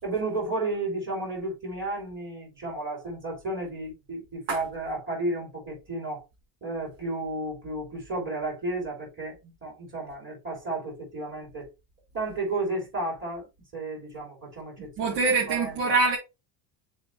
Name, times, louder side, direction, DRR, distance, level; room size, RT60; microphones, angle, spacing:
voice 1, 0.0-6.2 6.6-11.7 12.1-13.4 13.7-15.2 15.5-15.8, right 2 dB, 25° right, 3.3 m, -32 dB
voice 2, 14.8-16.2, right 3 dB, 80° right, 2.8 m, -24 dB
6.7 x 4.2 x 3.3 m
cardioid pair, 150°, 48 cm